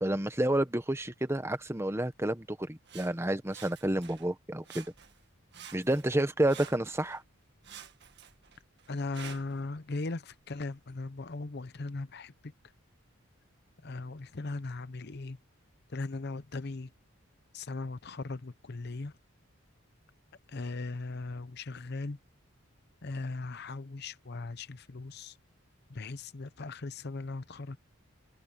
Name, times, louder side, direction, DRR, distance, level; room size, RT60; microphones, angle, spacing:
voice 1, 0.0-4.8 5.7-7.2, right 1 dB, 10° right, 1.0 m, -30 dB
Sawing, 2.9-4.3 4.6-5.3 5.5-7.2 7.6-9.6 10.3-10.4, right 8 dB, 55° right, 1.9 m, -50 dB
voice 2, 8.9-12.5 13.8-15.4 15.9-16.9 17.5-19.1 20.5-22.2 23.0-25.4 25.9-27.8, left 3 dB, 50° left, 0.7 m, -38 dB
open air
head